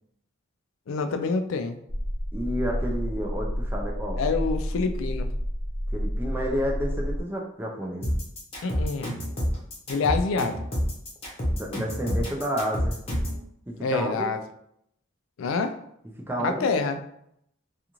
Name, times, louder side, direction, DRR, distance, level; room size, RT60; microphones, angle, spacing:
voice 1, 0.9-1.8 4.2-5.3 8.6-9.1 9.9-10.6 13.8-14.4 15.4-15.8 16.4-17.0, left 4 dB, 70° left, 8 dB, 0.3 m, -26 dB
sound 1, 1.9-7.2, equal, 75° right, 0.9 m, -30 dB
voice 2, 2.3-4.2 5.9-8.1 11.5-13.0 13.7-14.3 16.3-16.7, equal, 10° right, -1 dB, 0.3 m, -30 dB
sound 2, 8.0-13.4, equal, 30° left, 0.8 m, -28 dB
2.4 x 2.4 x 2.9 m, 0.73 s
head